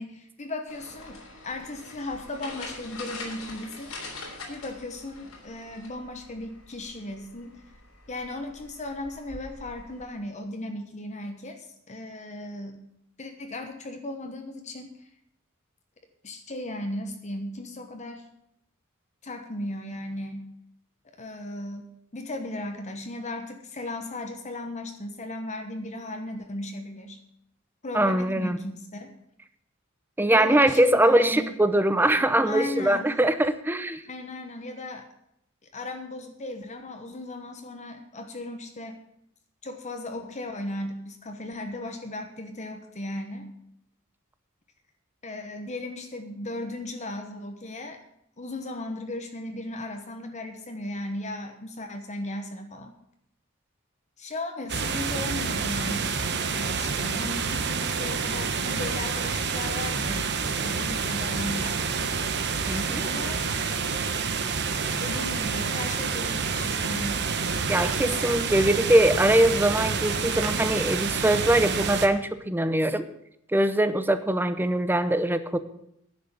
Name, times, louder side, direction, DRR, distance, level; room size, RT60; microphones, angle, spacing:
voice 1, 0.0-3.9 4.5-7.6 8.1-12.8 13.2-15.1 16.2-18.3 19.2-20.4 21.2-27.2 27.8-29.1 30.3-31.6 32.5-33.2 34.1-35.1 35.7-39.0 39.6-43.5 45.2-48.0 48.4-52.9 54.2-60.3 60.6-61.8 63.0-63.5 65.0-67.3, left 1 dB, 35° left, 5 dB, 1.1 m, -36 dB
sound 1, 0.7-10.0, left 3 dB, 85° left, 3.4 m, -44 dB
voice 2, 27.9-28.6 30.2-34.0 62.7-63.1 67.7-73.1 73.5-75.6, right 1 dB, 10° right, 11 dB, 0.7 m, -22 dB
sound 2, 54.7-72.1, right 5 dB, 55° right, 1.1 m, -28 dB
sound 3, 64.6-65.8 67.7-68.8 69.8-70.5, right 4 dB, 85° right, 2.1 m, -41 dB
10.5 x 6.6 x 9.1 m, 0.75 s
head